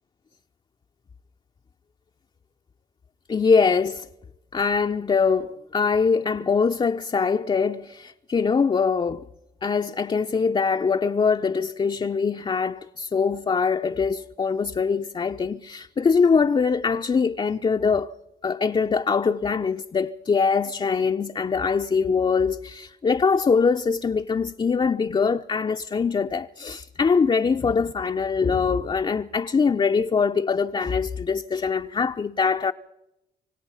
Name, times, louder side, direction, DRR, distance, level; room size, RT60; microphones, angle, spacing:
voice 1, 3.3-4.1 4.5-9.3 9.6-18.1 18.4-32.7, left 5 dB, 35° left, 0.7 m, -23 dB
26.0 x 17.5 x 5.7 m
cardioid pair, 80°, 15 cm